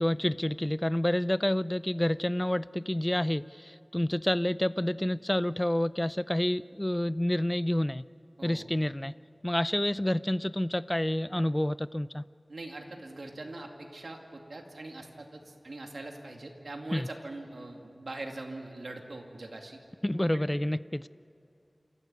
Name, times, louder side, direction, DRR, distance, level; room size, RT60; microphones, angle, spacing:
voice 1, 0.0-8.0 8.4-9.1 9.4-12.2 16.9-17.1 20.0-21.1, left 1 dB, 20° left, 17 dB, 0.5 m, -28 dB
voice 2, 12.5-19.8 20.3-20.5, right 2 dB, 90° right, 2 dB, 2.4 m, -42 dB
27.5 x 14.5 x 9.7 m, 2.6 s
wide cardioid pair, 65°, 0 cm